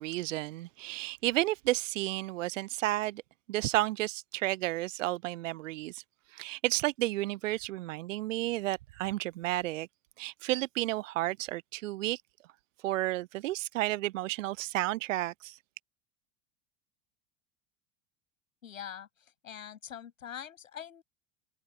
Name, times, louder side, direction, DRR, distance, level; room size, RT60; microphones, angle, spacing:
voice 1, 0.0-3.2 3.5-6.0 6.3-9.9 10.2-12.2 12.8-15.6, right 17 dB, 70° right, 0.6 m, -32 dB
voice 2, 18.6-21.0, left 9 dB, 80° left, 6.3 m, -44 dB
hypercardioid pair, 85°, 40 cm